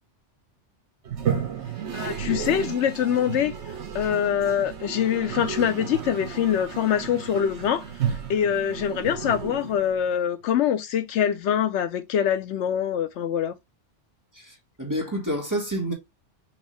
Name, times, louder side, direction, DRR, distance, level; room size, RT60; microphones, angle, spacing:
Toilet flush, 1.0-10.2, right 8 dB, 70° right, 1.2 m, -32 dB
voice 1, 1.9-3.5 3.9-7.9 8.3-13.5, left 9 dB, 80° left, 0.9 m, -24 dB
voice 2, 14.3-15.9, equal, 15° right, 1.4 m, -29 dB
6.3 x 2.7 x 3.1 m
omnidirectional pair, 1.2 m